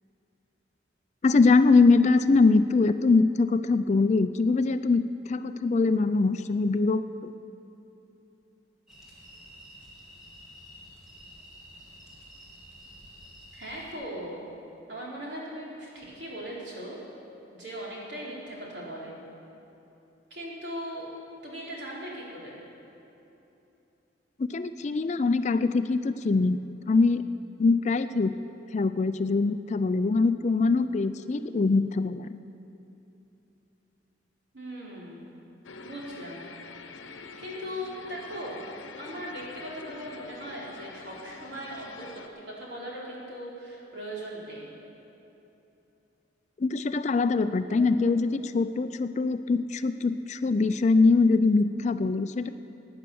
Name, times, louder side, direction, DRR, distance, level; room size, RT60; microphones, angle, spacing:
voice 1, 1.2-7.3 24.4-27.2 27.6-28.4 28.7-32.4 46.6-52.5, left 3 dB, 35° left, 11 dB, 0.4 m, -23 dB
sound 1, 8.9-13.9, equal, 5° right, 2.5 m, -50 dB
voice 2, 13.6-14.4 14.9-17.0 17.6-19.2 20.3-21.1 21.4-22.6 34.5-35.3 35.8-36.5 37.4-38.6 39.0-44.7 47.7-47.8, equal, 65° right, -5 dB, 3.8 m, -39 dB
sound 2, 35.6-42.3, left 4 dB, 85° left, 0.9 m, -45 dB
16.5 x 9.6 x 7.0 m, 3.0 s
head